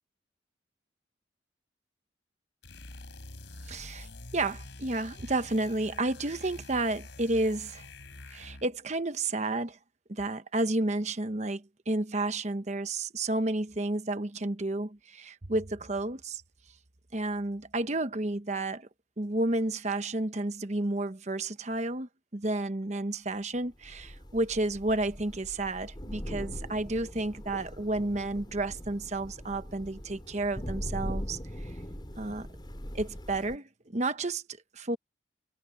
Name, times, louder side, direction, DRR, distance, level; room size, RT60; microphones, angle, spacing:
sound 1, 2.6-8.8, left 2 dB, 80° left, 3.4 m, -46 dB
voice 1, 3.7-7.8 8.3-9.8 10.1-16.4 17.1-18.9 19.2-31.7 32.2-32.5 32.9-34.4 34.7-35.0, right 2 dB, 40° right, 1.0 m, -31 dB
Thunder / Rain, 23.8-33.6, equal, 25° left, 5.3 m, -41 dB
head